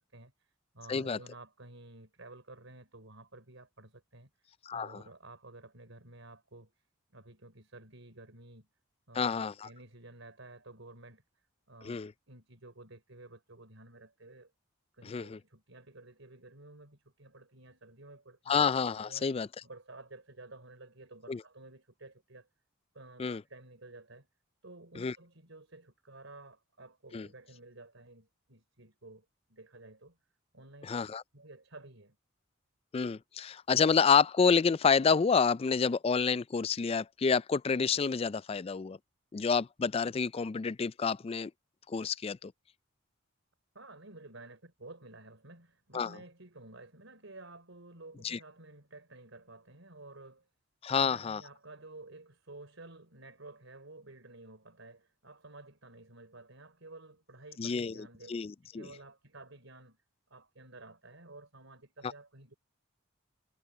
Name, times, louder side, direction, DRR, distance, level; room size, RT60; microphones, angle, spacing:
voice 1, 0.0-4.3 4.7-6.7 7.1-8.7 9.1-11.2 11.7-12.0 12.3-14.5 14.9-18.6 19.0-19.3 19.6-22.5 22.9-24.3 24.6-30.2 30.5-30.9 31.3-32.2 43.7-50.5 50.9-58.3 58.6-60.0 60.3-62.5, right 2 dB, 75° right, 3.8 m, -52 dB
voice 2, 4.7-5.0 9.1-9.7 11.8-12.1 15.0-15.4 18.5-19.5 21.3-21.4 23.2-23.4 25.0-25.1 27.1-27.3 30.9-31.2 32.9-39.0 39.3-41.5 41.9-42.5 45.9-46.2 48.2-48.4 50.8-51.4 57.6-58.9 62.0-62.1, left 5 dB, 30° left, 0.3 m, -29 dB
head